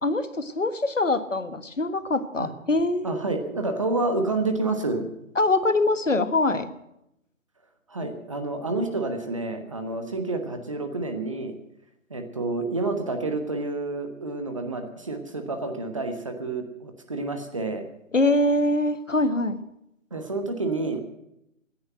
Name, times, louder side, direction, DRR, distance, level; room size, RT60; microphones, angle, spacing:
voice 1, 0.0-3.2 5.3-6.7 18.1-19.6, left 2 dB, 65° left, 11 dB, 1.5 m, -23 dB
voice 2, 3.0-5.1 7.9-11.6 12.1-17.8 20.1-21.0, right 2 dB, 25° right, 6 dB, 1.2 m, -29 dB
15.0 x 10.0 x 9.1 m, 0.80 s
figure-of-eight pair, 160°, 41 cm